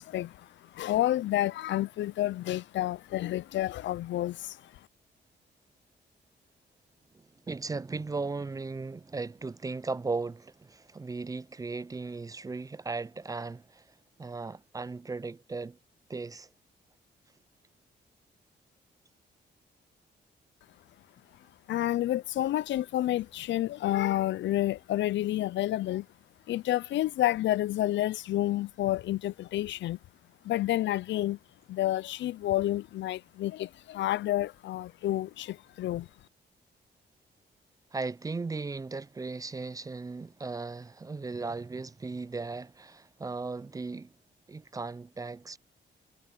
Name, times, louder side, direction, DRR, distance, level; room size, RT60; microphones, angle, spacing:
voice 1, 0.0-4.7 21.7-26.1 26.5-30.0 30.4-31.4 31.7-36.1, left 14 dB, 80° left, 0.4 m, -29 dB
voice 2, 7.1-13.9 14.2-15.8 16.1-16.5 37.9-44.1 44.5-45.6, right 3 dB, 20° right, 0.4 m, -37 dB
wide cardioid pair, 130°, 19 cm